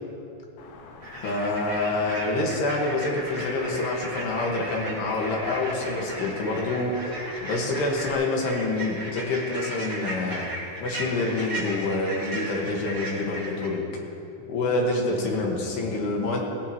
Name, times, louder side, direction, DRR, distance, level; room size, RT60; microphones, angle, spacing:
sound 1, 0.6-8.1, left 3 dB, 90° left, 4.0 m, -44 dB
sound 2, 1.0-13.7, right 1 dB, 45° right, 0.8 m, -36 dB
voice 1, 1.2-7.0 7.4-10.5 10.8-13.8 14.5-16.5, left 2 dB, 65° left, -1 dB, 3.4 m, -27 dB
18.0 x 17.5 x 3.1 m, 2.7 s
omnidirectional pair, 5.7 m